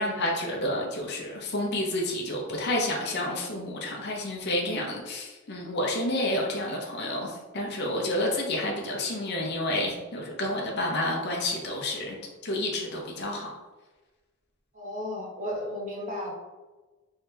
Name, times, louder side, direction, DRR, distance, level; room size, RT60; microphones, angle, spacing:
voice 1, 0.0-12.2 12.4-13.5, left 1 dB, 50° left, -1 dB, 0.6 m, -29 dB
voice 2, 14.7-16.3, left 1 dB, 35° right, -4 dB, 0.9 m, -34 dB
3.5 x 3.2 x 2.7 m, 1.2 s
head